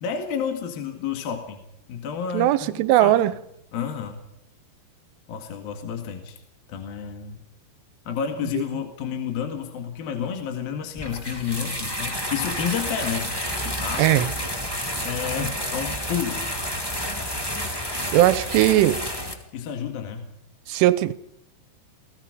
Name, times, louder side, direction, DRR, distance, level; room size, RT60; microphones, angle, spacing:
voice 1, 0.0-1.6 1.9-3.2 3.7-4.2 5.3-6.4 6.7-7.4 8.1-13.3 13.6-14.2 15.0-16.4 19.5-20.3, left 7 dB, 60° left, 3.4 m, -30 dB
voice 2, 2.3-3.3 14.0-14.3 18.1-19.0 20.7-21.1, right 14 dB, 85° right, 3.4 m, -19 dB
sound 1, 11.0-19.3, equal, 15° left, 0.8 m, -30 dB
29.0 x 20.0 x 5.1 m
omnidirectional pair, 5.4 m